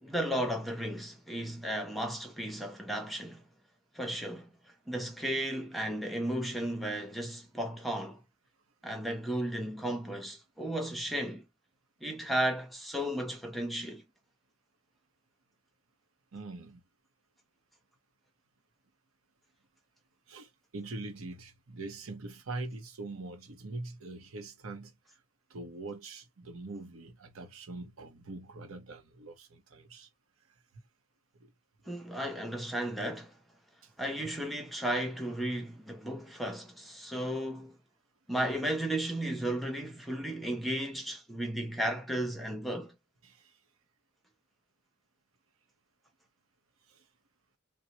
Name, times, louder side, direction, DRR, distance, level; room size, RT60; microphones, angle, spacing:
voice 1, 0.0-3.4 3.9-4.5 4.9-8.2 8.8-11.4 12.0-14.0 31.9-33.3 34.0-37.7 38.3-42.9, right 1 dB, ahead, 0.7 m, -34 dB
voice 2, 16.3-16.8 20.3-24.9 25.5-30.1 31.4-31.5 33.8-33.9 43.2-43.5 46.9-47.0, right 2 dB, 75° right, 0.8 m, -43 dB
4.1 x 2.1 x 2.9 m
head